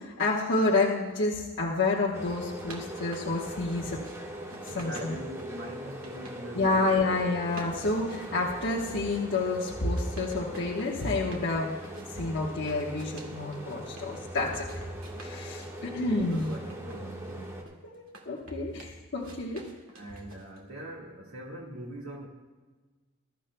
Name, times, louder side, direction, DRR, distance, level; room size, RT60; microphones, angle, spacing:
voice 1, 0.0-4.0 4.7-5.2 6.5-11.8 12.1-14.7 15.2-16.5 17.9-18.8 19.1-19.6, left 3 dB, 55° left, -5 dB, 1.2 m, -29 dB
sound 1, 2.1-17.6, equal, 15° right, 1.4 m, -41 dB
sound 2, 2.3-4.2 4.5-6.4 6.7-7.2 7.5-11.5 11.8-14.1 14.4-15.7 16.2-18.7 19.2-20.7, right 2 dB, 70° right, 2.1 m, -50 dB
voice 2, 4.4-7.3 16.0-17.7 19.9-22.3, right 1 dB, 85° right, -2 dB, 1.7 m, -42 dB
22.0 x 13.0 x 2.2 m, 1.3 s
head